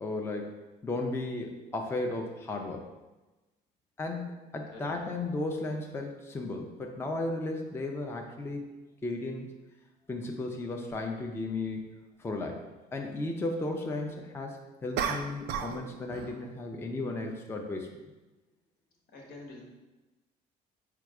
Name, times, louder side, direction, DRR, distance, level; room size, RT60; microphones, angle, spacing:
voice 1, 0.0-2.8 4.0-8.7 9.0-9.5 10.1-11.8 12.2-12.6 12.9-17.9, left 2 dB, 15° left, 2 dB, 0.4 m, -35 dB
sound 1, 10.9-11.0 15.0-15.8 16.1-16.4, right 7 dB, 85° right, 0.4 m, -33 dB
voice 2, 19.1-19.6, left 2 dB, 80° left, -1 dB, 1.2 m, -47 dB
4.6 x 2.3 x 4.7 m, 1.1 s
cardioid pair, 110°, 17 cm